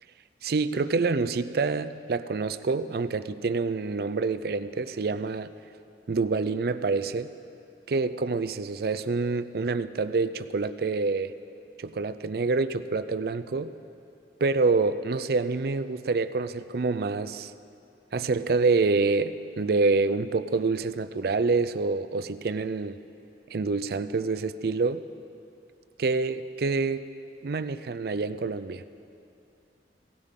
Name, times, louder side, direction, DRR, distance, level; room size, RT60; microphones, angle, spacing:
voice 1, 0.4-5.5 6.1-7.3 7.9-11.3 11.8-13.7 14.4-17.5 18.1-23.0 23.5-25.0 26.0-27.0 27.4-28.8, right 4 dB, 60° right, 12 dB, 0.4 m, -27 dB
18.0 x 15.5 x 3.7 m, 2.7 s
head